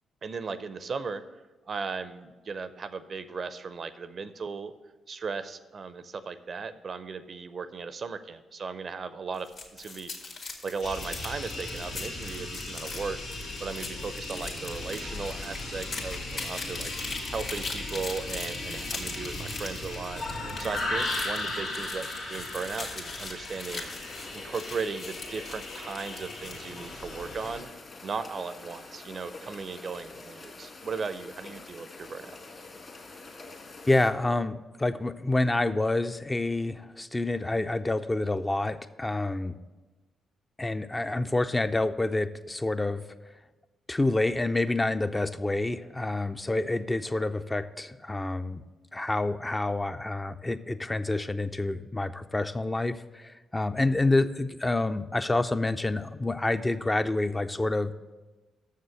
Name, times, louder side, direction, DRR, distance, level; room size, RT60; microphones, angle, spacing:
voice 1, 0.2-1.2 1.7-4.7 5.1-10.3 10.6-13.2 13.6-16.9 17.3-20.2 20.6-23.9 24.3-27.7 28.0-32.3, right 5 dB, 50° right, 13 dB, 0.5 m, -36 dB
sound 1, 9.3-26.7, left 3 dB, 60° left, 1.8 m, -41 dB
sound 2, 10.8-27.6, left 2 dB, 85° left, 1.8 m, -37 dB
sound 3, 23.7-34.1, left 3 dB, 45° left, 1.9 m, -46 dB
voice 2, 33.9-39.6 40.6-43.0 43.9-48.6 48.9-57.9, left 2 dB, 20° left, 9 dB, 0.5 m, -28 dB
6.7 x 6.6 x 7.6 m, 1.2 s
hypercardioid pair, 45°, 0 cm